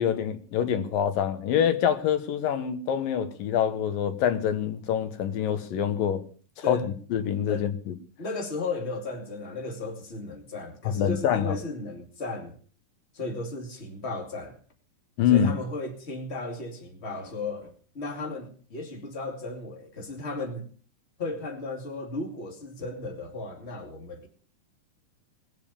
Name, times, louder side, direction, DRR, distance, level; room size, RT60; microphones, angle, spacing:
voice 1, 0.0-6.2 6.7-6.8 7.1-7.7 10.9-11.6 15.2-15.5, left 9 dB, 85° left, 3.0 m, -25 dB
voice 2, 8.2-12.6 13.1-14.6 15.3-20.7 21.2-24.3, left 3 dB, 20° left, 2.5 m, -35 dB
20.5 x 7.5 x 7.0 m
omnidirectional pair, 3.9 m